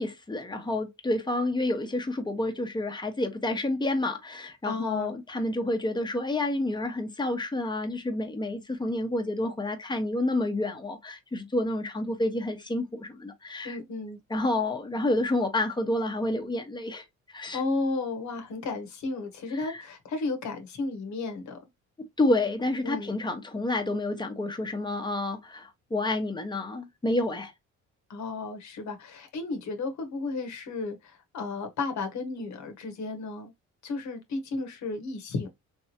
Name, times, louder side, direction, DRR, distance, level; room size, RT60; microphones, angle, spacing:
voice 1, 0.0-13.8 14.3-17.0 17.3-17.6 19.5-19.8 22.0-27.5, left 2 dB, 15° left, 1.0 m, -29 dB
voice 2, 4.6-5.2 13.6-14.2 17.5-21.6 22.8-23.2 28.1-33.5 33.8-35.5, left 3 dB, 70° left, 1.1 m, -33 dB
3.4 x 3.1 x 2.8 m
cardioid pair, 90°, 30 cm